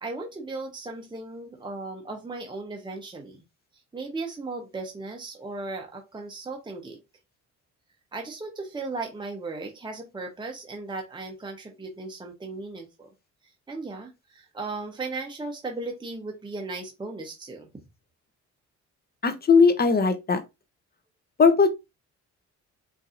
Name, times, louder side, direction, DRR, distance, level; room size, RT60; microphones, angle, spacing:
voice 1, 0.0-3.4 3.9-7.0 8.1-13.1 13.7-17.7, right 3 dB, 15° right, 0.9 m, -36 dB
voice 2, 19.2-20.4 21.4-21.7, left 5 dB, 30° left, 0.7 m, -18 dB
4.6 x 2.7 x 2.5 m
cardioid pair, 90°, 30 cm